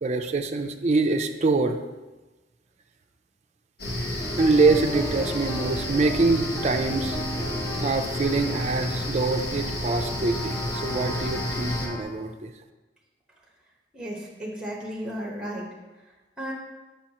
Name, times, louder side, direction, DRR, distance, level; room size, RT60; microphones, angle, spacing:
voice 1, 0.0-1.8 4.4-7.2 7.8-12.5, right 3 dB, 40° right, 5 dB, 0.4 m, -24 dB
sound 1, 3.8-11.9, left 1 dB, 65° left, 1.1 m, -31 dB
sound 2, 4.2-12.0, right 1 dB, 20° left, 0.8 m, -37 dB
voice 2, 13.9-15.7 16.4-16.5, equal, 5° right, -3 dB, 1.1 m, -34 dB
7.2 x 5.5 x 2.9 m, 1.1 s
head